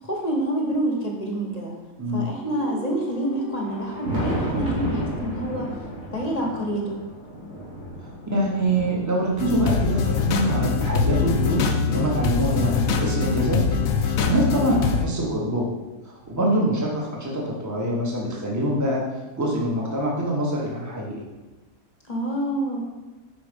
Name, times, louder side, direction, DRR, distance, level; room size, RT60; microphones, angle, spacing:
voice 1, 0.0-1.7 2.1-5.7 6.1-7.0 22.1-22.8, right 1 dB, 30° left, -1 dB, 1.0 m, -27 dB
voice 2, 2.0-2.3 8.0-13.6 14.0-15.7 16.0-19.0 19.4-21.2, right 1 dB, 15° right, -2 dB, 1.0 m, -25 dB
sound 1, 2.3-6.0 7.4-11.2 12.0-13.2, right 1 dB, 45° right, 1.9 m, -44 dB
Thunder, 3.5-12.1 12.7-14.5 15.6-15.7 16.3-16.4 18.2-18.3 19.7-19.8 21.4-21.5, equal, 85° right, 2.3 m, -34 dB
sound 2, 9.4-15.0, left 5 dB, 70° left, 1.0 m, -23 dB
5.2 x 4.8 x 5.1 m, 1.1 s
omnidirectional pair, 1.7 m